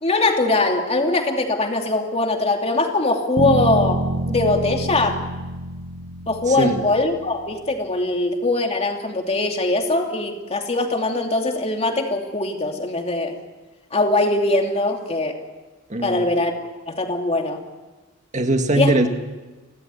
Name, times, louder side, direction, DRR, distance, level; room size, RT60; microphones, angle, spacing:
voice 1, 0.0-5.2 6.3-13.3 13.9-15.4 16.0-16.5 16.9-17.6 18.7-18.9, left 2 dB, 30° left, 3 dB, 2.8 m, -21 dB
sound 1, 3.4-7.3, right 2 dB, 65° right, 1.0 m, -27 dB
voice 2, 6.5-6.8 15.9-16.3 18.3-19.1, right 2 dB, 35° right, 6 dB, 2.0 m, -20 dB
29.5 x 13.0 x 9.7 m, 1.2 s
head